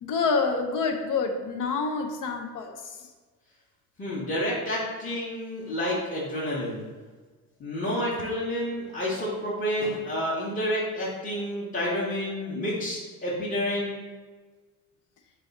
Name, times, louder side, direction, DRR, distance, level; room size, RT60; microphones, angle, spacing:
voice 1, 0.0-3.0 9.1-9.2, left 4 dB, 45° left, 4 dB, 0.6 m, -27 dB
voice 2, 4.0-6.8 7.6-14.0, equal, 15° left, -7 dB, 1.2 m, -29 dB
3.4 x 3.3 x 4.1 m, 1.4 s
hypercardioid pair, 65°, 47 cm